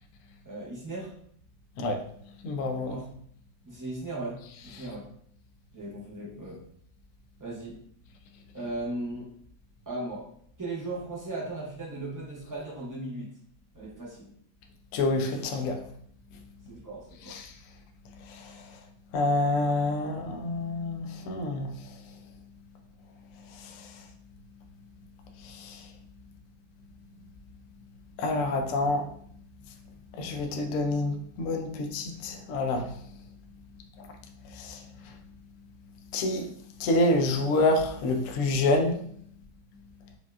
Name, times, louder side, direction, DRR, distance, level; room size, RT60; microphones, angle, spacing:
voice 1, 0.4-1.1 2.9-3.1 3.6-5.0 5.7-6.6 7.4-7.8 8.5-9.3 9.9-10.3 10.6-13.3 13.7-14.3 16.7-17.4, right 2 dB, 25° right, 0.4 m, -37 dB
voice 2, 1.8-2.1 2.4-2.9 4.7-4.9 14.9-15.9 16.3-16.5 17.2-17.6 18.2-18.8 19.1-22.2 23.3-24.1 25.4-25.9 28.2-29.1 30.1-33.2 34.0-34.2 34.4-35.2 36.1-39.0, left 2 dB, 75° left, 0.7 m, -28 dB
5.0 x 2.3 x 2.4 m
omnidirectional pair, 1.8 m